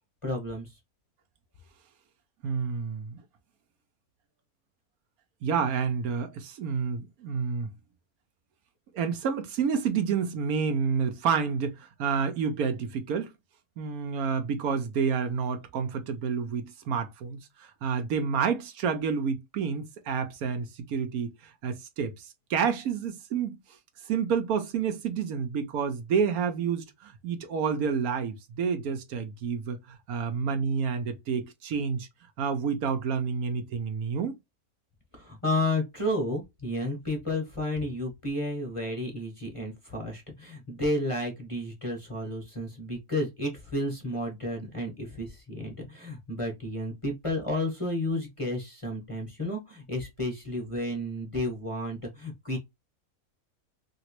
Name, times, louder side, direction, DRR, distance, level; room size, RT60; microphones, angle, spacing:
voice 1, 0.2-0.8 35.1-52.6, left 1 dB, 25° left, 0.9 m, -32 dB
voice 2, 2.4-3.2 5.4-7.7 8.9-13.3 13.8-23.6 24.1-32.1 32.4-34.4, right 6 dB, 75° right, 1.1 m, -29 dB
3.0 x 2.9 x 2.9 m
omnidirectional pair, 1.6 m